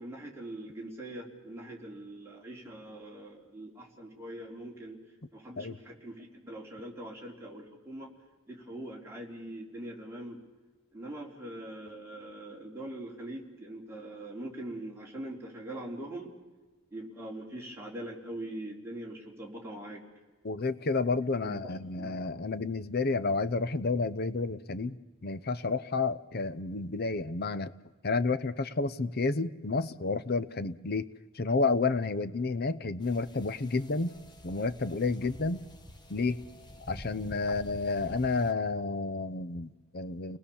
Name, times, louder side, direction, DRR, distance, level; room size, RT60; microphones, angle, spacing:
voice 1, 0.0-5.0 5.3-8.1 8.5-10.4 10.9-16.4 16.9-20.0 21.4-22.2, right 1 dB, 10° right, -2 dB, 3.8 m, -42 dB
voice 2, 20.4-25.0 25.2-27.7 28.0-31.1 31.3-34.2 34.4-35.6 36.1-36.4 36.9-40.4, left 3 dB, 45° left, 15 dB, 0.8 m, -30 dB
sound 1, 33.0-38.5, left 1 dB, 20° left, 1.6 m, -49 dB
30.0 x 20.0 x 7.2 m, 1.2 s
head